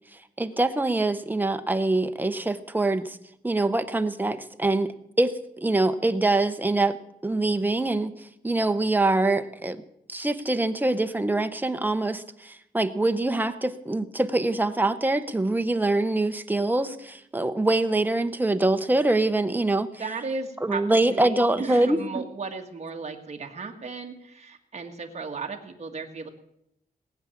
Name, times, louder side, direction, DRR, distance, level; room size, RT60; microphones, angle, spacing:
voice 1, 0.4-3.2 3.4-7.0 7.2-9.8 10.1-19.9 20.6-22.2, right 2 dB, 10° right, 9 dB, 0.7 m, -24 dB
voice 2, 20.0-26.3, right 4 dB, 40° right, 3 dB, 1.7 m, -35 dB
19.5 x 8.8 x 7.2 m, 0.78 s
wide cardioid pair, 170°, 17 cm